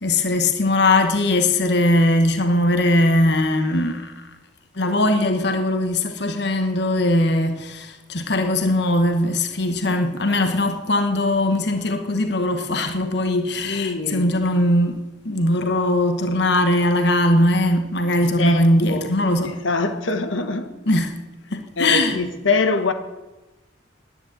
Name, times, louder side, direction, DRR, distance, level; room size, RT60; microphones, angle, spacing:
voice 1, 0.0-4.1 4.8-19.6 20.9-21.1 21.5-22.2, left 1 dB, 60° left, 1.2 m, -20 dB
voice 2, 13.6-14.3 18.2-19.1 19.4-20.8 21.8-22.9, left 3 dB, 85° left, 1.2 m, -24 dB
10.0 x 9.9 x 9.5 m
head